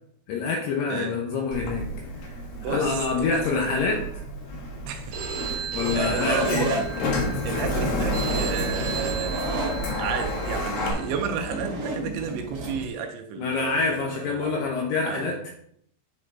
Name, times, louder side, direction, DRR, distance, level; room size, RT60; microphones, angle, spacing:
voice 1, 0.3-2.4 2.7-4.2 5.7-6.7 13.4-15.5, left 4 dB, 75° left, 2.4 m, -27 dB
voice 2, 0.9-1.2 2.5-3.7 4.9-5.2 5.5-6.9 7.4-9.4 9.9-14.6 15.1-15.3, right 7 dB, 80° right, 2.9 m, -32 dB
Sliding door, 1.5-10.9, left 1 dB, 60° left, 2.8 m, -30 dB
Telephone, 5.1-11.1, right 6 dB, 55° right, 2.0 m, -36 dB
sound 1, 6.0-12.9, right 1 dB, 35° right, 2.7 m, -32 dB
9.5 x 6.1 x 3.3 m
omnidirectional pair, 5.6 m